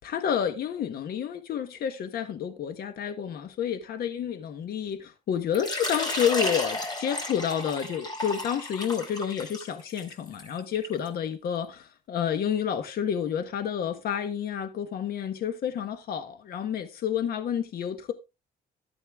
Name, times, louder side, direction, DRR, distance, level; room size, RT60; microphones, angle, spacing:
voice 1, 0.0-18.1, left 8 dB, 65° left, 1.4 m, -30 dB
Water / Liquid, 5.5-11.1, left 1 dB, 25° left, 4.4 m, -33 dB
13.5 x 8.6 x 3.6 m
cardioid pair, 125°, 17 cm